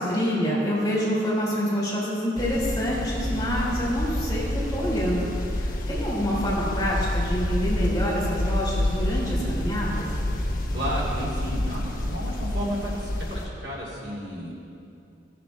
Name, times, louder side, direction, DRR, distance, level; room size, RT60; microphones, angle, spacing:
voice 1, 0.0-5.3 5.6-10.0, equal, 20° left, -6 dB, 3.2 m, -27 dB
sound 1, 2.4-13.5, left 1 dB, 45° left, 1.1 m, -28 dB
voice 2, 10.7-14.5, equal, 65° right, -6 dB, 2.7 m, -32 dB
17.5 x 7.5 x 4.2 m, 2.6 s
head